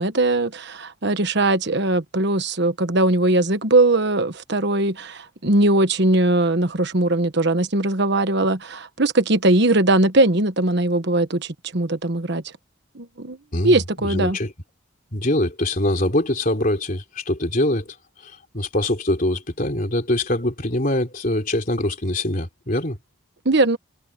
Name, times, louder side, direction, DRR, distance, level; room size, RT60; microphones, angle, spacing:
voice 1, 0.0-12.4 12.9-13.4 13.6-14.4 23.4-23.8, right 2 dB, 55° right, 1.2 m, -20 dB
voice 2, 13.5-14.5 15.1-23.0, left 1 dB, 40° left, 3.6 m, -23 dB
head